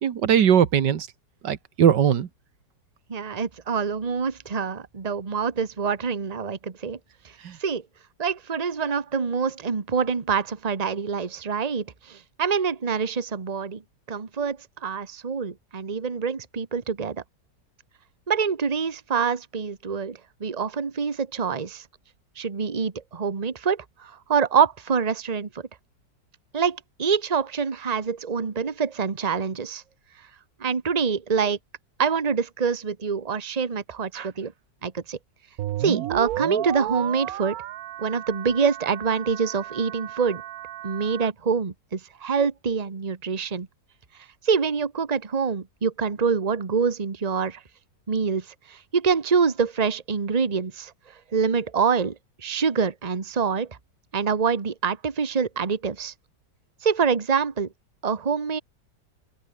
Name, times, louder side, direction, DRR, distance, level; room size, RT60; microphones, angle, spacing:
voice 1, 0.0-1.1 1.4-2.3 7.4-7.6, right 8 dB, 85° right, 2.0 m, -20 dB
voice 2, 3.1-7.0 7.6-7.8 8.2-13.8 14.1-17.2 18.3-21.8 22.4-25.5 26.5-29.8 30.6-31.6 32.0-34.5 34.8-35.2 35.8-37.5 38.0-40.4 40.8-43.7 44.4-47.6 48.1-48.4 48.7-50.9 51.3-52.1 52.4-53.7 54.1-56.1 56.8-57.7 58.0-58.6, right 6 dB, 25° right, 1.3 m, -25 dB
sound 1, 35.6-41.3, right 13 dB, 65° right, 1.1 m, -33 dB
open air
omnidirectional pair, 1.8 m